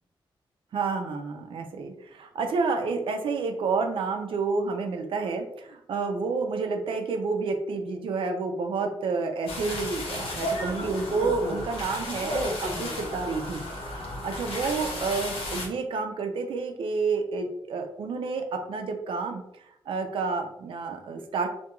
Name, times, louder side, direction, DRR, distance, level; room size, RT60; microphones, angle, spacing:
voice 1, 0.7-13.6 14.0-19.4 19.9-21.5, right 4 dB, 70° right, 5 dB, 0.4 m, -29 dB
sound 1, 9.5-15.7, left 1 dB, 85° left, 0.8 m, -33 dB
2.9 x 2.2 x 2.3 m, 0.78 s
wide cardioid pair, 140°, 9 cm